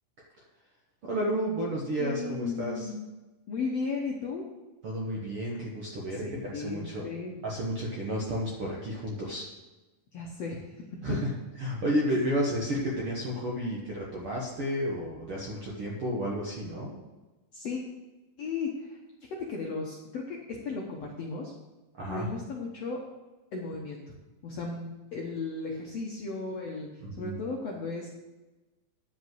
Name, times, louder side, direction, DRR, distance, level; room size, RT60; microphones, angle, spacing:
voice 1, 1.0-2.9 4.8-7.0 7.4-9.5 11.0-11.3 11.6-16.9 21.9-22.3 27.0-27.4, equal, 60° right, -3 dB, 1.5 m, -31 dB
voice 2, 2.0-2.9 3.5-4.5 6.2-7.3 10.1-10.7 11.1-11.2 17.5-17.8 18.4-19.0 19.5-21.5 22.1-23.0 23.5-24.0 24.4-28.1, left 4 dB, 70° left, -2 dB, 1.6 m, -35 dB
10.5 x 5.3 x 7.8 m, 1.1 s
omnidirectional pair, 4.3 m